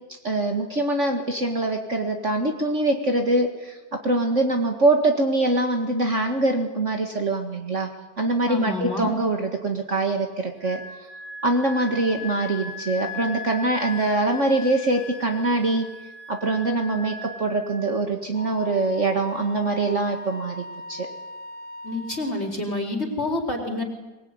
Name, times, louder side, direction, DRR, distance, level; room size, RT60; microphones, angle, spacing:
voice 1, 0.2-7.9 8.2-10.8 11.4-15.9 16.3-20.6 20.9-21.1, right 2 dB, 45° right, 3 dB, 2.3 m, -23 dB
voice 2, 8.5-9.1 21.8-23.8, left 2 dB, 40° left, 2 dB, 4.3 m, -28 dB
Wind instrument woodwind instrument, 10.6-18.1, left 3 dB, 85° right, 7.8 m, -38 dB
Wind instrument woodwind instrument 2, 18.3-22.5, left 1 dB, 65° left, 2.7 m, -39 dB
24.0 x 21.5 x 9.7 m, 1.1 s
omnidirectional pair, 1.8 m